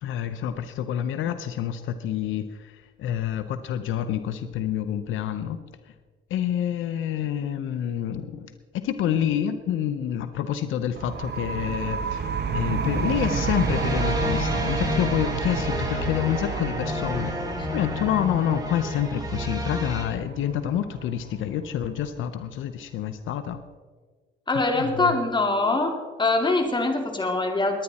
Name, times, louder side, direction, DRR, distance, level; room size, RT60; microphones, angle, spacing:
voice 1, 0.0-5.6 6.3-17.4 17.7-23.6 24.7-25.1, left 10 dB, 80° left, 10 dB, 0.8 m, -28 dB
sound 1, 11.0-22.3, right 6 dB, 55° right, 1.2 m, -31 dB
sound 2, 12.8-20.0, left 2 dB, 20° right, 4.5 m, -30 dB
voice 2, 24.5-25.9 26.2-27.8, left 2 dB, 25° left, 3 dB, 2.6 m, -23 dB
21.0 x 9.9 x 4.2 m, 1.4 s
cardioid pair, 90°, 20 cm